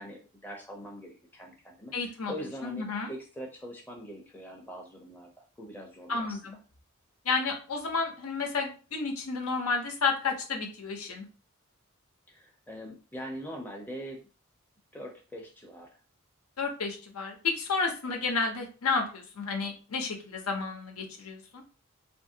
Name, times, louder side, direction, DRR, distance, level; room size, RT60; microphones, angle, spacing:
voice 1, 0.0-5.3 5.6-6.4 12.3-14.2 14.9-15.9 18.0-18.2, equal, 10° left, 0 dB, 0.5 m, -42 dB
voice 2, 1.9-2.3 2.6-3.1 6.1-6.6 7.2-11.3 16.6-21.6, left 4 dB, 90° left, 2 dB, 0.7 m, -31 dB
2.7 x 2.5 x 2.7 m, 0.37 s
head